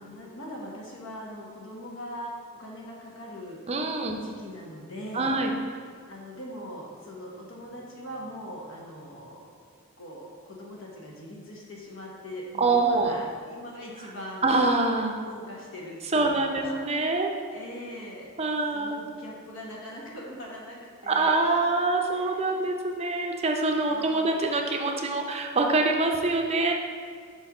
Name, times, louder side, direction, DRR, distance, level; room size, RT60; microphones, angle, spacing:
voice 1, 0.0-3.6 4.1-5.4 6.1-14.5 15.2-16.8 17.5-18.3 18.7-21.5 22.1-22.7 23.9-24.4, equal, 65° left, -3 dB, 1.3 m, -41 dB
voice 2, 3.7-4.2 5.1-5.5 12.6-13.1 14.4-15.2 16.1-17.4 18.4-19.0 21.1-26.7, right 3 dB, 30° right, 2 dB, 0.6 m, -25 dB
5.8 x 4.4 x 4.8 m, 2.1 s
head